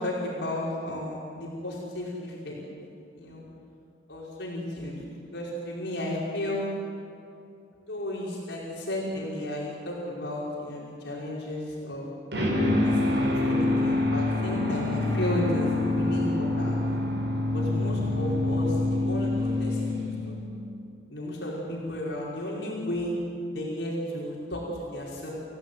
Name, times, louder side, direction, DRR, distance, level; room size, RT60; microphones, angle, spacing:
voice 1, 0.0-2.6 3.1-3.4 4.1-5.0 5.2-6.7 7.9-12.1 12.8-16.8 17.5-20.4 21.1-23.1 23.5-25.3, left 1 dB, 70° left, -5 dB, 5.2 m, -33 dB
sound 1, 12.3-20.6, left 2 dB, 70° right, 6.7 m, -26 dB
28.0 x 16.5 x 9.4 m, 2.6 s
head